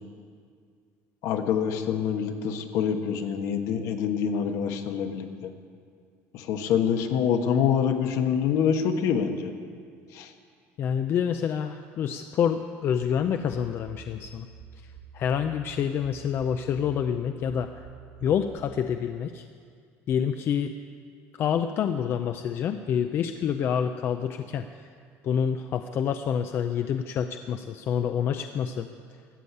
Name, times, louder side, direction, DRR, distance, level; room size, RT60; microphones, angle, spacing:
voice 1, 1.2-5.5 6.3-9.5 10.1-10.3, left 7 dB, 70° left, 7 dB, 1.3 m, -26 dB
voice 2, 10.8-14.5 15.1-17.8 18.2-19.4 20.1-20.7 21.4-24.7 25.2-28.9, left 8 dB, 45° left, 8 dB, 0.5 m, -27 dB
sound 1, 12.8-18.6, right 6 dB, 70° right, 1.4 m, -48 dB
14.0 x 8.4 x 9.3 m, 2.1 s
cardioid pair, 145°, 6 cm